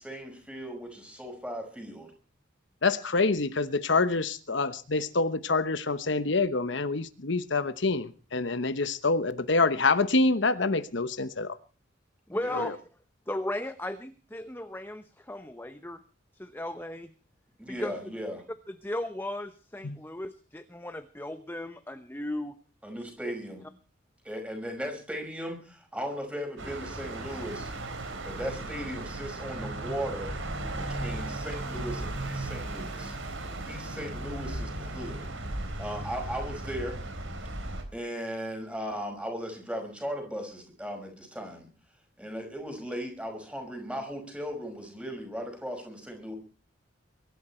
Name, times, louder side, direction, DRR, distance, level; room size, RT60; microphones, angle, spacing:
voice 1, 0.0-2.1 12.3-12.7 17.6-18.4 22.8-23.6 24.2-27.7 28.2-30.4 30.7-33.1 33.7-35.3 35.8-37.0 37.9-41.7 42.2-46.4, equal, 5° right, 4 dB, 5.6 m, -37 dB
voice 2, 2.8-11.6 12.5-12.7 19.8-20.0, left 3 dB, 65° left, 12 dB, 1.0 m, -26 dB
voice 3, 12.3-12.8 13.3-16.0 16.4-17.1 17.7-17.9 18.7-22.5, left 1 dB, 10° left, 9 dB, 0.9 m, -36 dB
sound 1, 26.6-37.8, right 2 dB, 80° right, 4.1 m, -36 dB
23.0 x 13.0 x 4.4 m, 0.37 s
head